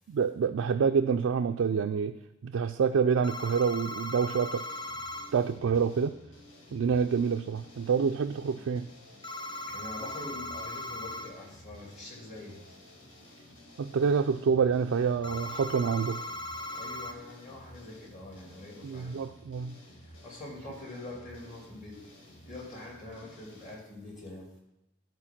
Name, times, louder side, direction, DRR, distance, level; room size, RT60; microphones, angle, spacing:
voice 1, 0.1-2.2 2.4-4.6 5.3-6.1 6.7-8.9 13.8-16.2 18.8-19.8, right 6 dB, 85° right, 6 dB, 0.4 m, -27 dB
sound 1, 3.2-5.3 9.2-11.3 15.2-17.1, left 1 dB, 25° left, 0.5 m, -38 dB
sound 2, 4.5-23.7, equal, 70° left, 1.9 m, -53 dB
voice 2, 9.4-12.8 13.4-13.5 16.7-19.1 20.0-22.1 22.4-24.5, left 2 dB, 40° left, -2 dB, 2.6 m, -44 dB
11.0 x 4.6 x 5.8 m, 0.90 s
head